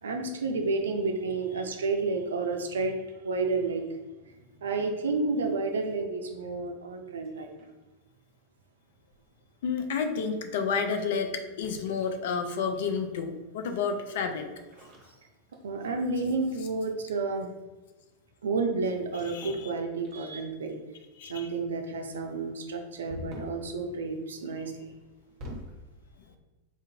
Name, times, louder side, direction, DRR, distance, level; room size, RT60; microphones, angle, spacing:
voice 1, 0.0-3.0 3.2-3.8 4.6-7.5 15.6-17.5 18.4-20.8 21.3-24.7, right 3 dB, 65° right, 4 dB, 0.4 m, -30 dB
sound 1, 7.1-7.9 9.1-9.4 11.5-13.2 14.6-15.9 16.3-16.6 19.0-19.7 20.0-20.6 23.1-23.7 24.9-25.8, left 1 dB, 35° right, 0.8 m, -46 dB
voice 2, 9.6-14.5 19.3-19.6 21.2-21.5, left 5 dB, 55° left, 6 dB, 0.3 m, -30 dB
3.6 x 2.5 x 2.6 m, 1.1 s
figure-of-eight pair, 90°, 0 cm